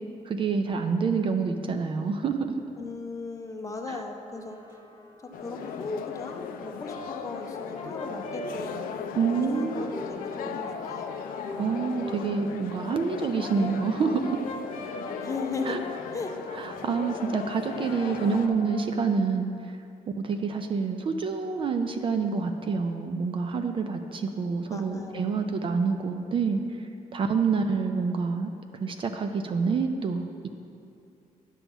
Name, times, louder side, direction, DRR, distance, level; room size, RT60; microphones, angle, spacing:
voice 1, 0.3-2.5 3.9-4.0 9.1-9.9 11.6-14.4 15.7-15.8 16.6-19.8 20.2-28.5 28.8-30.5, right 5 dB, 35° right, 6 dB, 0.4 m, -27 dB
voice 2, 2.8-4.6 5.4-11.1 15.2-15.8 16.1-16.3 24.7-25.4, left 3 dB, 20° left, 4 dB, 0.6 m, -37 dB
sound 1, 4.3-9.5 9.7-15.2 15.6-18.1, left 2 dB, 15° right, 0.7 m, -48 dB
sound 2, 5.3-18.5, left 7 dB, 80° left, 0.4 m, -38 dB
Brass instrument, 6.6-12.2 13.1-18.9, left 1 dB, 45° left, 0.9 m, -41 dB
9.8 x 3.6 x 7.0 m, 2.6 s
cardioid pair, 150°, 15 cm